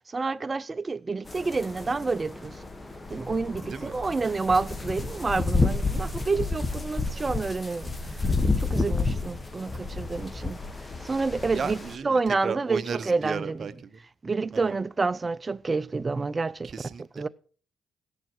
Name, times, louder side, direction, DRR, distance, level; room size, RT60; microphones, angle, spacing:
voice 1, 0.1-2.6 3.1-7.9 8.6-10.6 11.0-11.8 12.0-13.7 14.2-16.7 17.2-17.3, right 4 dB, 30° right, 0.4 m, -28 dB
sound 1, 1.3-12.0, left 3 dB, 20° left, 1.2 m, -30 dB
voice 2, 11.5-14.0 14.5-14.8 16.6-17.2, right 5 dB, 45° right, 0.9 m, -34 dB
17.0 x 7.2 x 4.6 m
cardioid pair, 90°, 0 cm